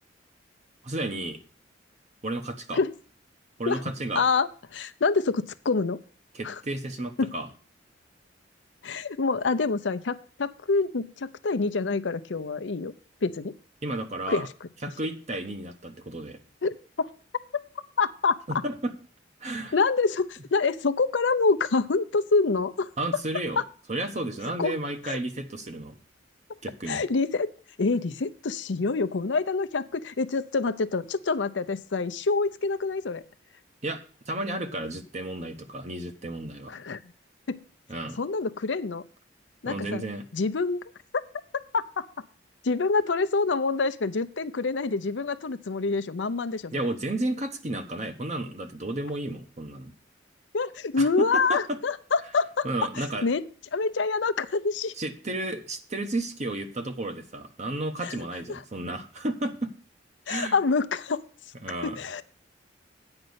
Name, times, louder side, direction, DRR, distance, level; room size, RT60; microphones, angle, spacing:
voice 1, 0.8-1.4 2.2-2.8 3.6-4.3 6.3-7.5 13.8-14.5 14.8-16.4 18.5-18.9 19.4-19.7 23.0-23.6 23.9-26.0 26.6-27.0 33.8-36.7 37.9-38.2 39.6-40.2 46.7-49.9 51.0-51.8 52.6-53.2 55.0-59.7 60.3-60.6 61.6-62.0, right 1 dB, 40° right, 7 dB, 1.0 m, -32 dB
voice 2, 4.1-6.0 6.4-6.6 7.2-7.3 8.8-12.9 13.2-13.5 14.3-14.5 16.6-16.7 18.0-18.4 19.7-22.9 23.6-23.7 24.6-24.8 25.0-25.2 26.9-27.5 27.8-33.2 36.7-37.0 37.5-37.6 38.2-39.0 39.6-40.0 40.3-40.8 41.7-42.0 42.6-46.7 50.5-52.7 53.0-53.4 53.7-54.9 58.0-58.1 58.5-58.6 60.3-61.2 61.8-62.2, left 4 dB, 75° left, 12 dB, 0.6 m, -26 dB
8.8 x 5.3 x 7.9 m, 0.40 s
head